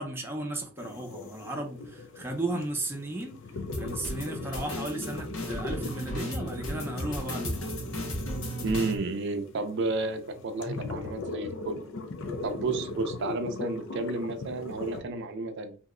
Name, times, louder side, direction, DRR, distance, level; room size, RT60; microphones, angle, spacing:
voice 1, 0.0-3.4 3.8-7.7, right 1 dB, 10° right, 0.6 m, -35 dB
sound 1, 0.8-15.0, left 3 dB, 65° left, 0.5 m, -40 dB
sound 2, 3.7-9.0, equal, 80° left, 1.0 m, -35 dB
voice 2, 8.6-11.9 12.4-15.8, right 3 dB, 60° right, 0.4 m, -32 dB
2.8 x 2.1 x 3.6 m
head